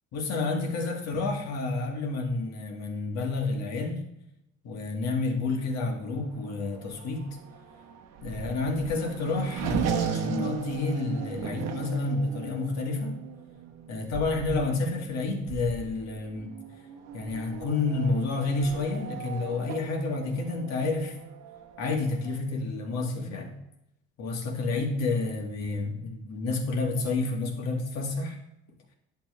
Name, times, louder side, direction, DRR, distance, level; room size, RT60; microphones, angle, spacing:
voice 1, 0.1-4.0 4.6-7.4 8.2-13.2 13.9-16.5 17.1-21.2 21.8-23.5 24.2-28.4, left 3 dB, 65° left, 2 dB, 1.9 m, -29 dB
Race car auto racing / Accelerating revving vroom, 6.2-22.4, right 7 dB, 65° right, 1.0 m, -37 dB
10.5 x 7.2 x 3.2 m, 0.82 s
cardioid pair, 135°, 29 cm